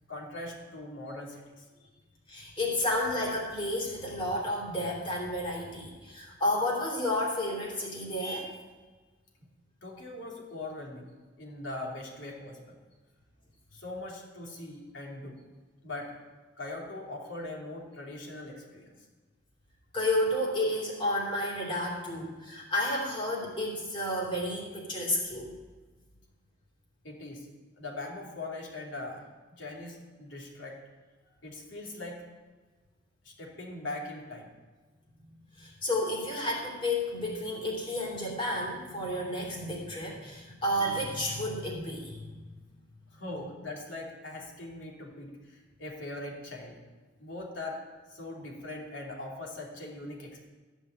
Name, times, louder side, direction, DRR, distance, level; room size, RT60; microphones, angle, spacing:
voice 1, 0.1-1.6 9.8-11.1 11.4-12.8 13.7-15.4 15.8-16.1 16.6-19.1 27.0-27.5 27.8-30.8 31.4-32.3 33.2-34.5 43.1-46.8 47.2-47.8 48.1-50.5, left 2 dB, 75° left, -1 dB, 2.8 m, -41 dB
voice 2, 2.3-8.6 19.9-25.5 35.5-42.4, left 1 dB, 25° left, -3 dB, 3.0 m, -31 dB
14.0 x 5.5 x 8.8 m, 1.3 s
head